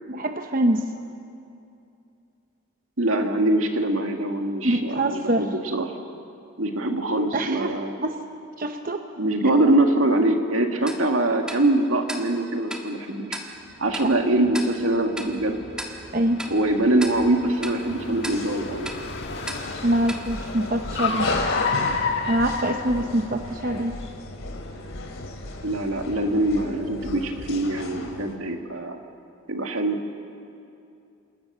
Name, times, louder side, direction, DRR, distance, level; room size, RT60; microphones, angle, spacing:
voice 1, 0.1-0.9 4.6-5.4 7.3-7.7 8.0-8.2 8.6-9.1 16.1-16.5 19.8-21.3 22.3-24.0, right 1 dB, 40° right, 6 dB, 0.9 m, -24 dB
voice 2, 3.0-5.9 6.6-8.0 9.2-13.4 13.8-15.6 16.5-18.9 25.6-29.0 29.5-30.0, right 1 dB, 85° right, 4 dB, 2.1 m, -23 dB
Tick-tock, 10.9-21.3, right 1 dB, 5° right, 1.6 m, -39 dB
Car, 13.7-23.6, left 5 dB, 55° left, 1.9 m, -32 dB
sound 1, 17.9-28.3, left 2 dB, 80° left, 2.8 m, -34 dB
28.0 x 18.5 x 6.8 m, 2.6 s
head